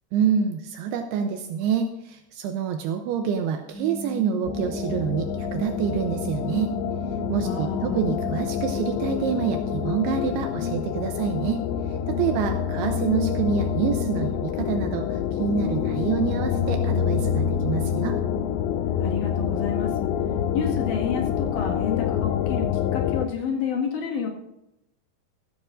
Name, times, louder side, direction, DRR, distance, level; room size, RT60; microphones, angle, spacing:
voice 1, 0.1-6.8 7.3-11.6 12.1-18.2, right 7 dB, 80° right, 5 dB, 2.6 m, -27 dB
sound 1, 3.7-10.0, equal, 5° right, 3.1 m, -35 dB
sound 2, 4.4-23.3, left 8 dB, 90° left, 2.9 m, -27 dB
voice 2, 7.4-8.0 19.0-19.9 20.5-24.3, left 6 dB, 55° left, 0 dB, 2.9 m, -29 dB
14.5 x 14.5 x 2.6 m, 0.87 s
omnidirectional pair, 5.0 m